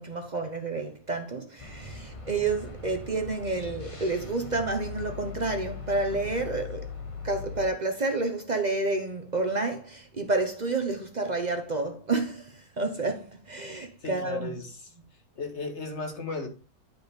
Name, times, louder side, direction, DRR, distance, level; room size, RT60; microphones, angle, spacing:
voice 1, 0.0-6.9 7.2-14.6, right 3 dB, 55° right, 0.4 m, -30 dB
sound 1, 1.6-7.7, left 4 dB, 20° left, 0.9 m, -40 dB
voice 2, 14.0-14.8 15.4-16.5, left 3 dB, 40° left, 1.8 m, -35 dB
9.8 x 5.3 x 3.6 m
omnidirectional pair, 2.1 m